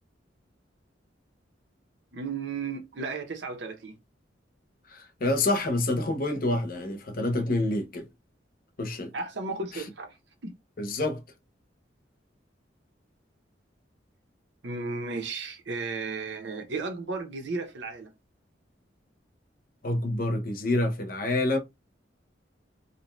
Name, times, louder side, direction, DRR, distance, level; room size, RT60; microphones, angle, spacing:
voice 1, 2.1-4.0 9.1-10.2 10.4-10.5 14.6-18.1, right 3 dB, 70° right, 0.7 m, -34 dB
voice 2, 4.9-8.1 8.8-9.1 9.7-9.8 10.8-11.2 19.8-21.6, left 2 dB, 50° left, 0.7 m, -27 dB
2.6 x 2.2 x 3.0 m
head